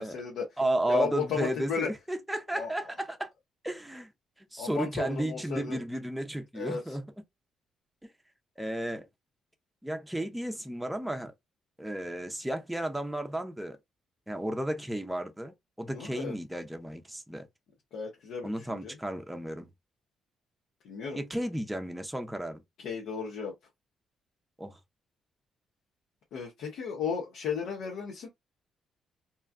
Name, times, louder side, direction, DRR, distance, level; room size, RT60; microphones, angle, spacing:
voice 1, 0.0-0.5 0.9-1.9 2.6-2.7 4.6-5.8 6.5-6.8 15.9-16.3 17.9-18.9 20.8-21.2 22.8-23.5 26.3-28.3, left 6 dB, 80° left, 1.0 m, -34 dB
voice 2, 0.6-3.3 3.6-4.1 4.5-7.1 8.6-9.1 9.8-11.3 11.8-13.8 14.3-17.5 18.4-19.7 21.1-22.6 24.6-24.8, right 1 dB, 5° right, 0.6 m, -33 dB
3.0 x 2.3 x 2.4 m
cardioid pair, 90°, 0 cm